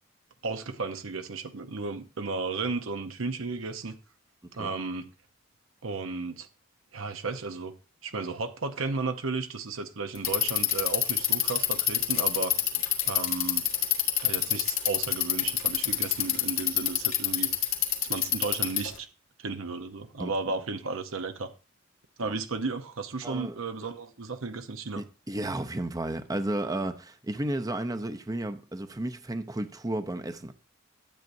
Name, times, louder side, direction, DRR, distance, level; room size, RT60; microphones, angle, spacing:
voice 1, 0.4-3.9 4.6-5.1 5.8-6.5 6.9-7.7 8.0-12.5 13.0-13.6 14.2-17.5 18.1-19.1 19.4-21.5 22.2-25.0, right 4 dB, 90° right, 0.9 m, -34 dB
Bicycle, 10.1-19.0, left 12 dB, 75° left, 1.8 m, -26 dB
voice 2, 23.2-23.5 24.9-30.5, right 1 dB, 20° right, 0.6 m, -33 dB
12.5 x 8.2 x 2.7 m
head